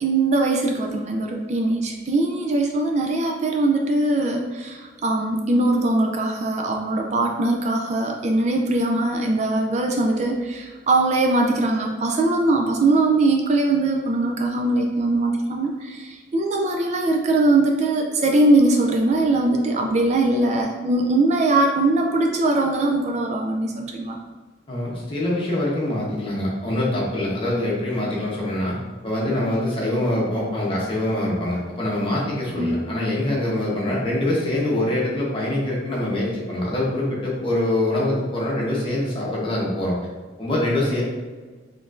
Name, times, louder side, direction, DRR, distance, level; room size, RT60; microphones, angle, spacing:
voice 1, 0.0-24.2 32.6-32.8, right 2 dB, 40° right, 2 dB, 0.4 m, -21 dB
voice 2, 24.7-28.8 29.0-39.9 40.4-41.0, left 1 dB, 30° left, -5 dB, 1.0 m, -24 dB
4.0 x 3.2 x 2.5 m, 1.4 s
head